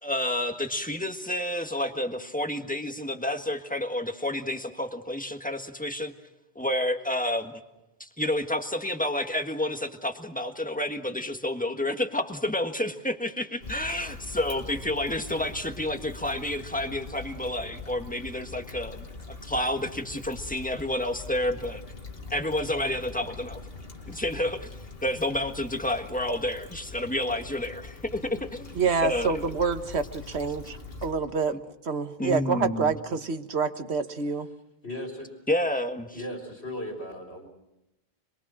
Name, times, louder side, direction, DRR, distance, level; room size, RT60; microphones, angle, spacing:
voice 1, 0.0-6.1 6.5-7.5 8.0-21.8 22.3-23.6 24.1-24.7 25.0-28.8 29.0-29.4 32.2-32.9 35.5-36.2, left 1 dB, 10° left, 6 dB, 1.6 m, -30 dB
Stream / Traffic noise roadway noise / Trickle dribble, 13.6-31.1, left 3 dB, 65° left, 2.2 m, -43 dB
voice 2, 28.7-34.5, right 5 dB, 85° right, 9 dB, 1.6 m, -27 dB
voice 3, 34.8-35.3 36.1-37.5, left 1 dB, 85° left, 1 dB, 4.0 m, -36 dB
26.5 x 22.5 x 6.3 m, 0.94 s
omnidirectional pair, 1.1 m